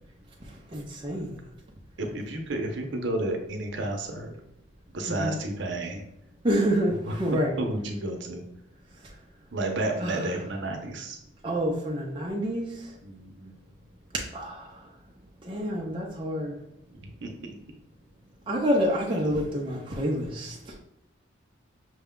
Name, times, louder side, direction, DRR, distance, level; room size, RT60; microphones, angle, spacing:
voice 1, 0.7-1.4 5.1-5.4 6.4-7.6 10.0-10.3 11.4-12.9 14.3-14.8 15.4-16.6 18.5-20.8, equal, 25° right, -2 dB, 0.5 m, -28 dB
voice 2, 2.0-4.4 4.9-6.0 6.9-7.2 7.6-8.4 9.5-11.2 13.0-13.5 17.0-17.6, right 2 dB, 60° right, 3 dB, 0.7 m, -31 dB
6.0 x 2.2 x 3.6 m, 0.77 s
head